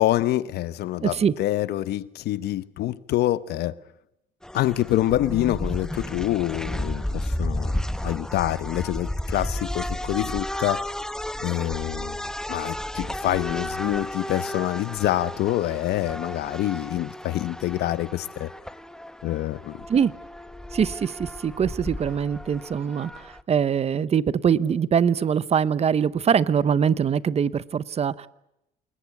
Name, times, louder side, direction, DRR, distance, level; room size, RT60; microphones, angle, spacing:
voice 1, 0.0-3.7 4.5-10.8 11.4-12.2 12.5-18.5 19.2-19.8, left 14 dB, 75° left, 1.0 m, -26 dB
voice 2, 1.0-1.3 19.9-20.1 20.7-28.3, right 7 dB, 40° right, 0.9 m, -23 dB
sound 1, 4.4-23.4, left 1 dB, 5° left, 1.0 m, -33 dB
27.5 x 21.5 x 8.5 m
cardioid pair, 110°, 17 cm